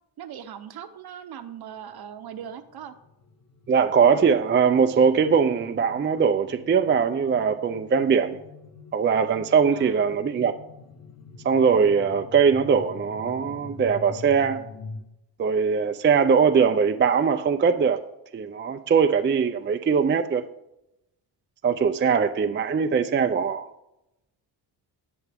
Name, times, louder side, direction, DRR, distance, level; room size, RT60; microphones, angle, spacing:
voice 1, 0.2-2.9 9.7-10.1, right 9 dB, 60° right, 0.9 m, -40 dB
sound 1, 2.3-15.0, left 4 dB, 35° left, 1.3 m, -45 dB
voice 2, 3.7-8.4 8.9-10.5 11.4-14.6 15.4-18.0 18.3-20.4 21.6-23.7, right 6 dB, 25° right, 0.5 m, -21 dB
19.0 x 7.0 x 3.5 m
wide cardioid pair, 155°, 43 cm